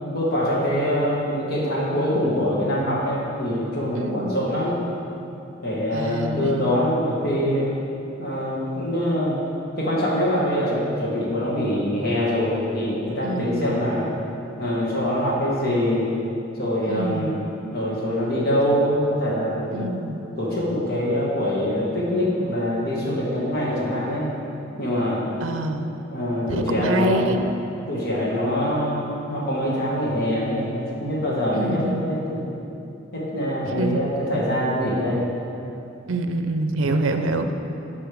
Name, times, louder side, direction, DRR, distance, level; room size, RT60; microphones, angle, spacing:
voice 1, 0.1-4.9 5.6-7.7 8.2-9.4 9.8-14.1 14.6-16.1 16.6-17.4 17.7-19.9 20.4-24.3 24.8-25.2 26.1-27.4 27.9-32.5 33.1-35.3, equal, 55° left, -5 dB, 1.8 m, -24 dB
voice 2, 4.0-4.4 5.9-6.7 13.2-13.9 16.8-17.4 19.7-20.2 25.4-25.9 26.5-27.4 31.5-32.1 33.7-34.6 36.1-37.5, right 2 dB, 85° right, 7 dB, 0.5 m, -26 dB
11.5 x 5.4 x 3.5 m, 2.8 s
head